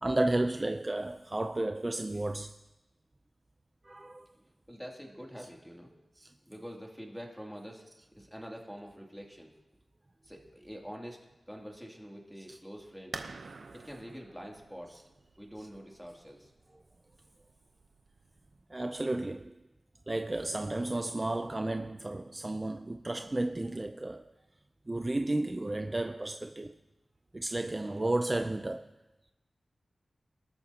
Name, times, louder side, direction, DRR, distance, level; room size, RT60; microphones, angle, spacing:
voice 1, 0.0-2.6 3.8-4.3 6.2-6.3 12.5-12.6 18.7-19.5 20.1-24.3 24.9-26.8 27.3-28.9, right 2 dB, 30° right, 0.5 m, -32 dB
voice 2, 4.7-6.0 6.4-7.9 8.2-9.5 10.2-11.2 11.5-13.2 13.7-15.0 15.4-16.5 27.8-28.1, equal, ahead, 2.6 m, -46 dB
sound 1, 13.1-18.6, right 4 dB, 80° right, 0.8 m, -48 dB
23.0 x 13.5 x 2.9 m
wide cardioid pair, 75°, 0 cm